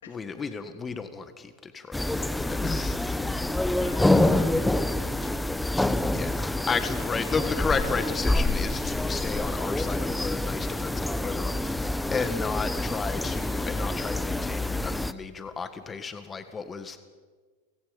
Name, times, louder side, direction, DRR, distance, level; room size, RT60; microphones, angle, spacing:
voice 1, 0.1-3.2 6.1-17.0, left 5 dB, 20° left, 10 dB, 1.6 m, -33 dB
sound 1, 1.9-15.1, left 1 dB, 5° left, 0.9 m, -27 dB
voice 2, 3.7-5.5, left 7 dB, 80° left, 7 dB, 2.6 m, -47 dB
29.5 x 17.5 x 5.3 m, 1.5 s
hypercardioid pair, 105°, 0 cm